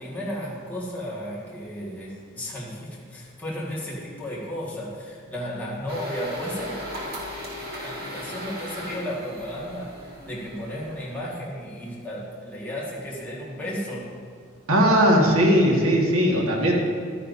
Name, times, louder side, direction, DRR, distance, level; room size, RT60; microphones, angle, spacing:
voice 1, 0.0-6.8 7.8-10.0 10.2-14.2, equal, 10° left, -7 dB, 1.6 m, -34 dB
sound 1, 5.9-11.2, equal, 45° right, 1.9 m, -37 dB
voice 2, 14.7-16.7, equal, 85° right, -1 dB, 1.7 m, -18 dB
12.5 x 10.0 x 2.7 m, 2.2 s
head